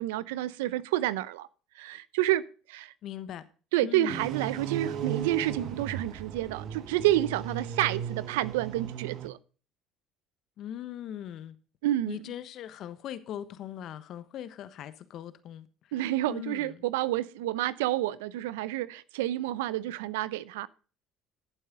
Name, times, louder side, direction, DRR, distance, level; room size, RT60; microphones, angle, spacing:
voice 1, 0.0-1.5 1.8-2.9 3.7-9.4 11.8-12.3 15.9-20.7, right 14 dB, 85° right, 0.6 m, -29 dB
voice 2, 3.0-3.5 3.8-4.2 10.6-11.5 12.1-15.7 16.3-16.7, left 10 dB, 60° left, 1.1 m, -40 dB
sound 1, 4.1-9.3, right 8 dB, 65° right, 1.5 m, -36 dB
14.0 x 7.9 x 3.9 m
supercardioid pair, 80°, 0 cm